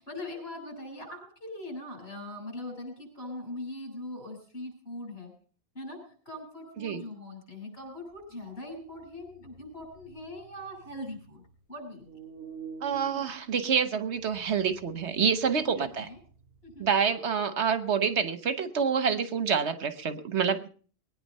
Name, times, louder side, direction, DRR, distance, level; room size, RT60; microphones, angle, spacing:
voice 1, 0.0-5.3 5.7-6.0 6.3-11.4 11.7-12.1 15.7-16.2 16.6-16.9, left 1 dB, 60° left, 2 dB, 7.5 m, -41 dB
sound 1, 8.9-11.5 11.9-17.1, right 4 dB, 55° right, 5.9 m, -48 dB
voice 2, 12.8-16.1 16.8-20.7, right 6 dB, 75° right, 11 dB, 1.4 m, -27 dB
21.0 x 9.7 x 5.5 m, 0.42 s
omnidirectional pair, 1.2 m